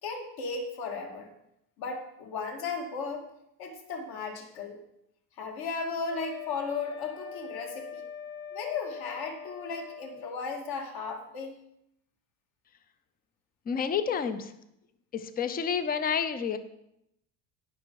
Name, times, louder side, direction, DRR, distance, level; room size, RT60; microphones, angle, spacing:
voice 1, 0.0-1.3 1.8-3.3 3.6-4.8 5.4-8.0 8.5-11.5, left 4 dB, 55° left, 2 dB, 2.3 m, -35 dB
Wind instrument woodwind instrument, 6.1-10.3, left 8 dB, 80° left, 3.6 m, -42 dB
voice 2, 13.7-14.5 15.1-16.6, left 7 dB, 20° left, 11 dB, 0.6 m, -29 dB
17.0 x 6.0 x 4.7 m, 0.80 s
cardioid pair, 165°, 44 cm